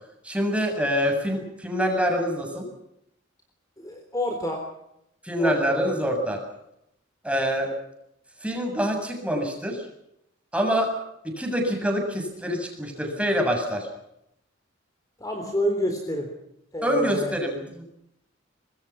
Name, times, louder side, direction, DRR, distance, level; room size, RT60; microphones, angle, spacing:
voice 1, 0.2-2.7 5.2-6.4 7.2-7.7 8.4-9.8 10.5-10.9 11.2-13.9 16.8-17.8, equal, 5° right, 2 dB, 7.5 m, -25 dB
voice 2, 3.8-4.6 5.4-5.8 15.2-16.3 16.7-17.3, equal, 20° left, 3 dB, 3.9 m, -28 dB
26.5 x 22.0 x 5.9 m, 0.81 s
head